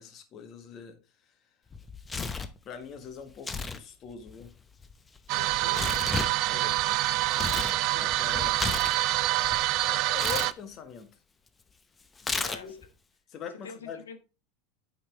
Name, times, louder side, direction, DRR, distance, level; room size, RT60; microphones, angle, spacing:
voice 1, 0.0-1.5 2.6-4.5 6.5-6.7 7.9-8.6 9.7-11.1 12.2-12.8 13.3-14.0, left 7 dB, 40° left, 1.7 m, -43 dB
Tearing, 1.7-2.6 3.3-3.8 4.1-7.8 8.1-9.6 10.1-10.5 12.2-12.8, left 4 dB, 20° left, 0.8 m, -34 dB
voice 2, 5.3-6.1 6.4-7.0 12.4-12.8 13.6-14.2, left 5 dB, 85° left, 1.3 m, -45 dB
sound 1, 5.3-10.5, right 17 dB, 55° right, 0.4 m, -26 dB
8.7 x 6.0 x 3.6 m
hypercardioid pair, 90°, 0 cm